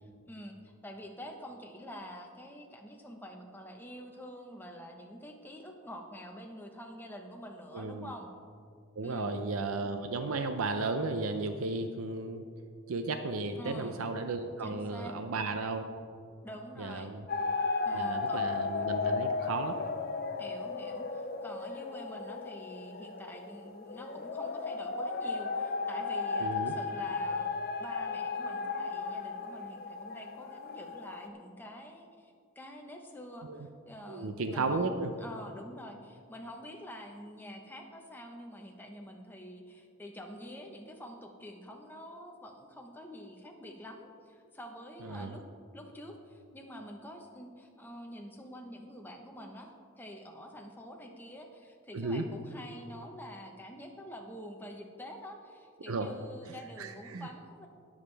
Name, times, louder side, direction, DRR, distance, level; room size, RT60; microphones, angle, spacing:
voice 1, 0.8-8.3 9.0-9.4 13.6-14.0 14.6-15.2 16.4-17.1 17.8-18.5 20.4-27.5 27.8-34.9 35.2-45.4 45.7-57.7, equal, 10° left, 2 dB, 1.0 m, -47 dB
voice 2, 7.7-8.1 9.0-12.4 12.9-15.9 16.8-17.2 17.9-19.8 26.4-26.8 33.4-33.7 34.1-35.1 45.0-45.4 51.9-52.2 55.9-56.1 56.4-57.3, right 3 dB, 80° right, 7 dB, 0.6 m, -34 dB
sound 1, 17.3-31.3, left 4 dB, 45° left, 0.5 m, -35 dB
20.0 x 7.3 x 3.4 m, 2.3 s
head